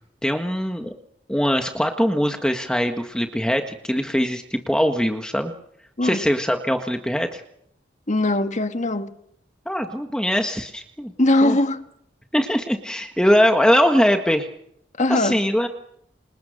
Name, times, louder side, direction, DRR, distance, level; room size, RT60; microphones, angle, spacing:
voice 1, 0.2-0.9 1.3-5.5 6.0-7.4 9.6-11.1 11.4-11.6 12.3-14.5 15.1-15.7, equal, 5° left, 1.6 m, -21 dB
voice 2, 8.1-9.1 11.2-11.8 15.0-15.4, left 2 dB, 40° left, 1.7 m, -20 dB
29.0 x 27.5 x 6.6 m
head